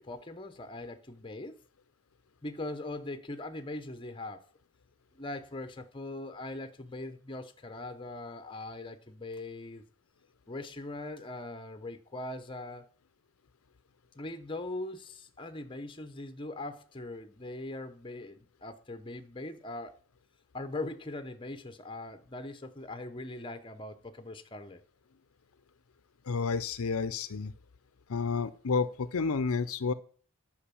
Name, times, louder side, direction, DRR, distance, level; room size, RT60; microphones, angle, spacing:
voice 1, 0.0-1.6 2.4-4.5 5.1-9.9 10.5-12.8 14.2-20.0 20.5-24.8, left 2 dB, 20° left, 0.8 m, -41 dB
voice 2, 26.3-27.5 28.1-29.9, left 5 dB, 75° left, 0.6 m, -30 dB
10.0 x 5.2 x 6.9 m
head